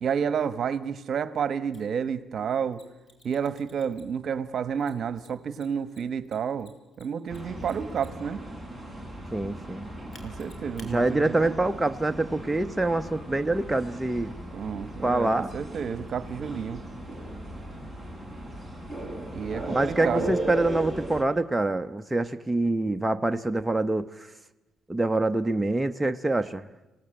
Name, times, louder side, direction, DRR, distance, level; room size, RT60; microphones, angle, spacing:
voice 1, 0.0-2.8 3.2-6.7 7.0-8.4 10.2-11.6 14.5-16.8 19.3-20.4, right 7 dB, 55° right, 15 dB, 1.2 m, -30 dB
Mechanisms, 1.7-1.8 2.7-4.3 4.8-8.3 10.1-10.9, left 2 dB, 40° left, 4.9 m, -54 dB
sound 1, 7.3-21.2, right 1 dB, 10° left, 4.1 m, -37 dB
voice 2, 9.3-9.9 10.9-14.3 15.0-15.5 19.7-24.1 24.9-26.6, right 2 dB, 10° right, 7 dB, 0.8 m, -25 dB
26.5 x 17.5 x 8.9 m, 1.1 s
cardioid pair, 90°, 0 cm